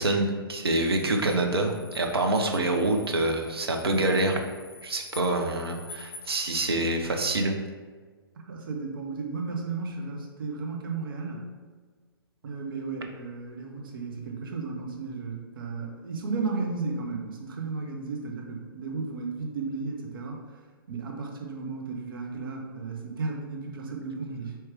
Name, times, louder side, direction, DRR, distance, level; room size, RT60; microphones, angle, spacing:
voice 1, 0.0-4.4 4.8-7.6, right 2 dB, 90° right, 3 dB, 0.7 m, -26 dB
sound 1, 0.6-6.4, left 3 dB, 25° left, 0.6 m, -48 dB
voice 2, 8.4-11.5 12.4-20.6 20.9-24.6, right 4 dB, 65° right, 1 dB, 1.0 m, -34 dB
4.5 x 3.1 x 3.4 m, 1.5 s
hypercardioid pair, 125°, 13 cm